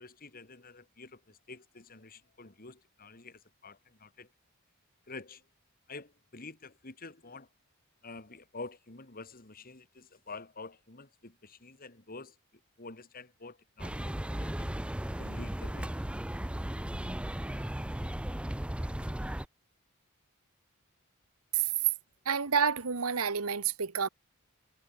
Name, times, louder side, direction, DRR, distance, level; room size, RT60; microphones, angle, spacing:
voice 1, 0.0-4.3 5.1-5.4 5.9-7.5 8.0-12.4 12.8-14.7 15.2-16.0 16.8-17.0, left 3 dB, 40° left, 2.3 m, -48 dB
sound 1, 13.8-19.5, right 1 dB, 5° right, 0.5 m, -36 dB
voice 2, 22.2-24.1, right 6 dB, 80° right, 1.2 m, -29 dB
head